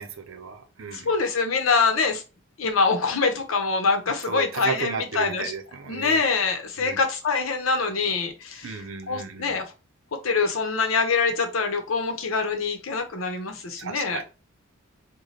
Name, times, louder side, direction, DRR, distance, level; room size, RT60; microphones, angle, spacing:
voice 1, 0.0-1.1 4.2-6.2 6.8-7.0 8.6-9.6 13.8-14.2, right 5 dB, 65° right, 0.6 m, -34 dB
voice 2, 0.9-2.2 2.6-5.5 5.9-8.8 9.1-9.6 10.2-14.2, left 4 dB, 75° left, 0.8 m, -24 dB
4.0 x 2.2 x 3.2 m
head